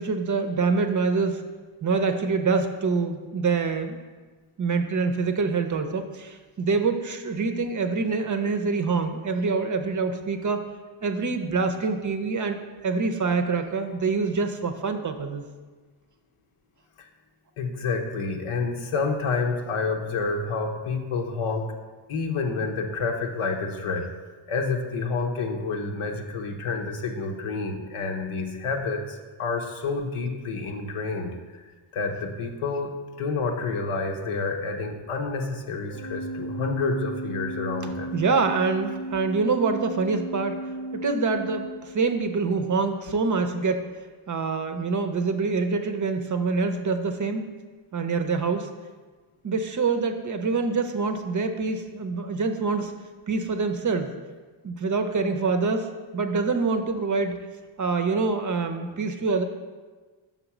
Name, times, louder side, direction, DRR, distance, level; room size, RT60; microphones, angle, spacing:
voice 1, 0.0-1.4 1.8-4.0 4.6-10.6 11.0-15.5 38.1-40.6 40.9-43.9 44.3-47.5 47.9-48.7 49.4-52.9 53.3-54.1 54.6-57.4 57.8-59.4, right 4 dB, 40° right, 7 dB, 0.6 m, -25 dB
voice 2, 17.6-21.6 22.1-24.0 24.5-31.6 31.9-32.9 33.2-38.2, left 4 dB, 80° left, 3 dB, 0.9 m, -29 dB
Organ, 35.9-42.4, right 2 dB, 50° left, 0.6 m, -35 dB
5.9 x 3.9 x 5.9 m, 1.3 s
cardioid pair, 90°, 49 cm